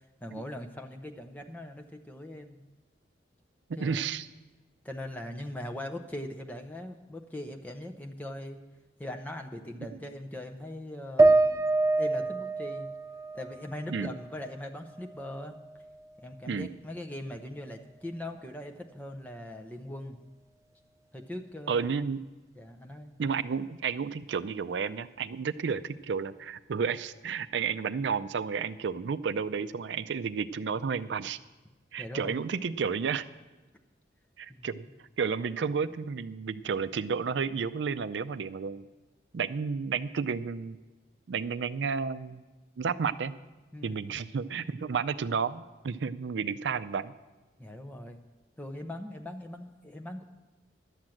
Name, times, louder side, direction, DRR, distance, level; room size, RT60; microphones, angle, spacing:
voice 1, 0.2-2.6 3.8-4.0 4.8-8.6 9.0-11.7 12.0-12.9 13.3-15.6 16.2-20.2 21.1-21.9 22.6-23.1 32.0-32.4 34.5-34.7 43.7-44.0 47.6-48.2 48.6-50.2, left 1 dB, 10° left, 3 dB, 0.7 m, -40 dB
voice 2, 3.8-4.3 13.9-14.1 16.5-16.7 21.7-22.2 23.2-31.4 31.9-33.3 34.4-34.9 35.2-38.8 39.3-40.8 41.3-42.4 42.8-43.3 43.8-47.1, right 6 dB, 85° right, 14 dB, 0.4 m, -31 dB
sound 1, 11.2-14.6 15.0-16.0, right 2 dB, 20° right, 0.3 m, -26 dB
11.5 x 7.3 x 7.7 m, 1.1 s
head